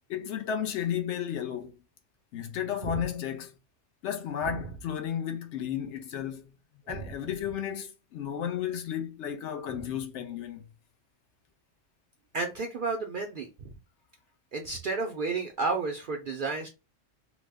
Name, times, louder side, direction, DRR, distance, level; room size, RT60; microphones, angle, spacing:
voice 1, 0.1-1.8 2.3-3.5 4.0-6.5 6.9-10.7, left 9 dB, 70° left, 0.9 m, -33 dB
voice 2, 12.3-13.7 14.5-16.7, right 4 dB, 65° right, 0.5 m, -32 dB
2.9 x 2.0 x 3.3 m
omnidirectional pair, 1.3 m